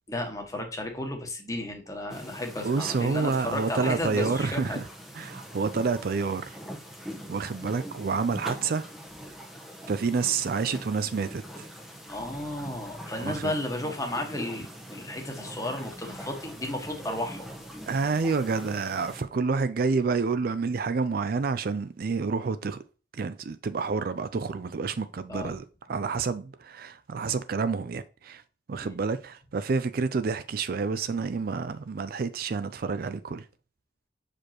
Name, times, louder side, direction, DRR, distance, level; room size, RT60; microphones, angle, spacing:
voice 1, 0.1-4.8 12.1-17.5 25.3-25.5 28.8-29.0, left 1 dB, 20° left, 1.4 m, -33 dB
sound 1, 2.1-19.2, equal, ahead, 1.0 m, -42 dB
voice 2, 2.6-4.8 5.2-6.6 7.3-8.9 9.9-11.7 13.2-13.5 17.9-22.8 23.1-28.4 28.7-33.4, right 4 dB, 50° right, 0.4 m, -29 dB
6.4 x 5.0 x 3.0 m
head